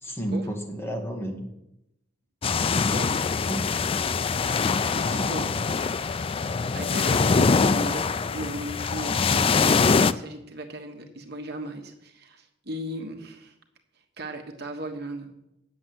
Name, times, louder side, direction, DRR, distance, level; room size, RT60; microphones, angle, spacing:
voice 1, 0.0-1.4 3.5-3.8 5.1-5.6, right 1 dB, 10° left, 1 dB, 1.8 m, -32 dB
sound 1, 2.4-10.1, left 5 dB, 30° left, 0.3 m, -23 dB
voice 2, 5.0-5.5 6.7-13.5 14.2-15.3, right 1 dB, 55° right, 3 dB, 1.5 m, -36 dB
9.8 x 7.7 x 7.8 m, 0.87 s
head